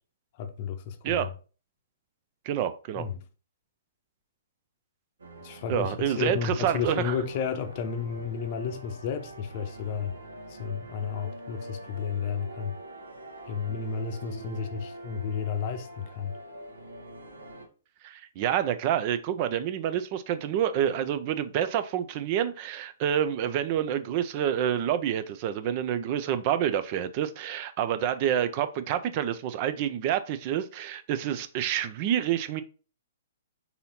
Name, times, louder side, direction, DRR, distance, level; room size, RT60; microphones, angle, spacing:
voice 1, 0.4-1.3 2.9-3.2 5.4-10.2 10.5-12.7 13.5-16.4, left 7 dB, 40° left, 0.7 m, -32 dB
voice 2, 2.5-3.1 5.7-7.2 18.0-32.6, right 10 dB, 40° right, 0.4 m, -28 dB
sound 1, 5.2-17.7, right 1 dB, 80° right, 1.0 m, -45 dB
4.1 x 2.8 x 4.1 m
figure-of-eight pair, 120°, 0 cm